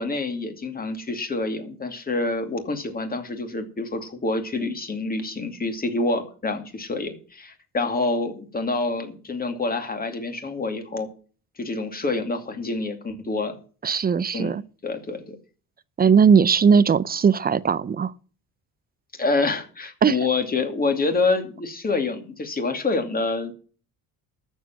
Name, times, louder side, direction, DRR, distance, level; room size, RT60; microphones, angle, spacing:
voice 1, 0.0-11.1 11.6-13.6 14.3-14.5 14.8-15.4 19.2-23.5, left 3 dB, 25° left, 2.5 m, -27 dB
voice 2, 13.8-14.6 16.0-18.1 20.0-20.2, right 6 dB, 25° right, 0.5 m, -18 dB
13.0 x 7.4 x 7.5 m
cardioid pair, 130°, 35 cm